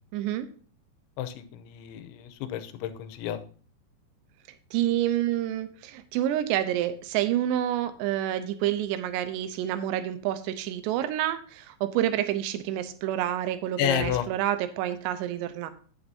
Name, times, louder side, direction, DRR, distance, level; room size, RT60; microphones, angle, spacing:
voice 1, 0.1-0.5 4.7-15.7, right 12 dB, 80° right, 10 dB, 2.8 m, -28 dB
voice 2, 1.2-3.4 13.8-14.3, left 11 dB, 90° left, 10 dB, 3.1 m, -30 dB
11.0 x 9.0 x 2.7 m, 0.42 s
omnidirectional pair, 5.2 m